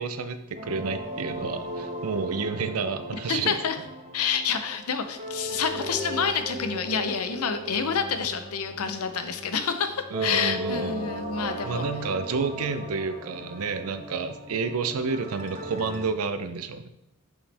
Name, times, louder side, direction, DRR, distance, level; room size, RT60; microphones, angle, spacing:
voice 1, 0.0-3.5 10.1-11.1 11.6-16.9, right 4 dB, 85° right, 10 dB, 0.6 m, -30 dB
sound 1, 0.5-16.0, equal, 35° right, 0.9 m, -37 dB
voice 2, 3.3-3.8 4.1-11.8, left 6 dB, 90° left, 9 dB, 0.7 m, -28 dB
7.0 x 5.6 x 3.4 m, 0.88 s
head